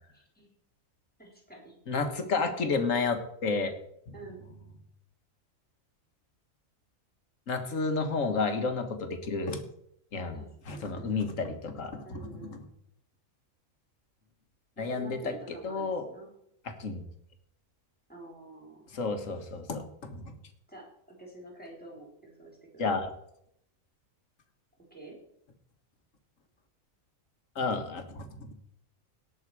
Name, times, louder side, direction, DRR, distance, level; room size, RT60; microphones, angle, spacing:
voice 1, 0.1-0.5 1.2-1.7 4.1-4.4 10.3-11.4 12.0-12.6 14.8-16.3 18.1-18.9 20.7-22.9 24.9-25.2, right 2 dB, 5° left, -1 dB, 3.7 m, -48 dB
voice 2, 1.9-3.7 7.5-9.6 10.1-10.4 10.7-12.6 14.8-16.0 16.8-17.0 18.9-20.3 22.8-23.1 27.5-28.5, left 4 dB, 70° left, 7 dB, 1.8 m, -31 dB
18.0 x 6.5 x 4.7 m, 0.75 s
omnidirectional pair, 1.4 m